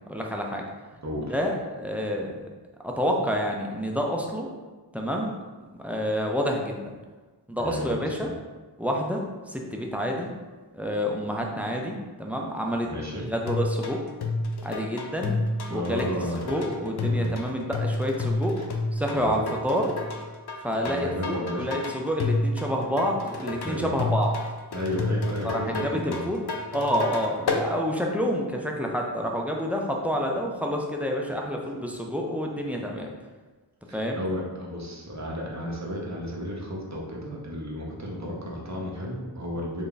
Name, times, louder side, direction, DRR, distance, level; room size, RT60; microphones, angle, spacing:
voice 1, 0.1-0.7 1.2-2.5 2.8-4.5 4.9-5.4 5.8-6.8 7.5-8.3 8.8-10.3 10.7-14.0 14.6-15.4 15.7-16.1 16.5-18.6 18.9-20.0 20.6-24.3 25.4-26.4 26.7-33.1 33.9-34.2, equal, 5° right, 0 dB, 0.5 m, -28 dB
voice 2, 1.0-1.4 7.6-8.3 12.8-13.3 15.7-16.6 17.0-17.3 18.6-18.7 19.1-19.4 20.8-21.8 23.6-23.9 24.7-26.2 33.9-39.8, equal, 40° right, -3 dB, 0.9 m, -33 dB
sound 1, 13.5-27.7, left 2 dB, 65° left, 0.5 m, -30 dB
3.4 x 2.6 x 3.8 m, 1.3 s
wide cardioid pair, 50°, 43 cm